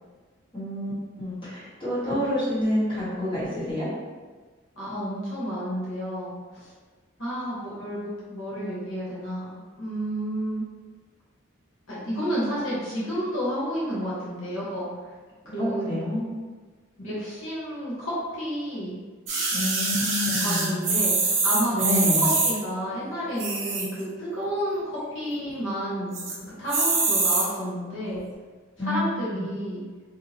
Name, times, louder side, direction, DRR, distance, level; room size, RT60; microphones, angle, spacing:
voice 1, 0.5-0.9 1.2-3.9 15.6-16.2 19.5-20.7 21.8-22.3 28.8-29.4, left 1 dB, 25° left, -13 dB, 1.5 m, -28 dB
voice 2, 4.8-6.7 7.2-10.6 11.9-14.9 15.5-15.9 17.0-19.0 20.4-22.1 22.4-28.2 28.8-29.8, equal, 85° left, -8 dB, 1.0 m, -31 dB
sound 1, 19.3-22.5 23.3-24.0 24.5-24.6 24.7-24.8 25.2-25.6 26.1-26.4 26.7-27.4 28.2-28.3, right 3 dB, 70° right, 0.7 m, -24 dB
2.8 x 2.4 x 2.7 m, 1.4 s
head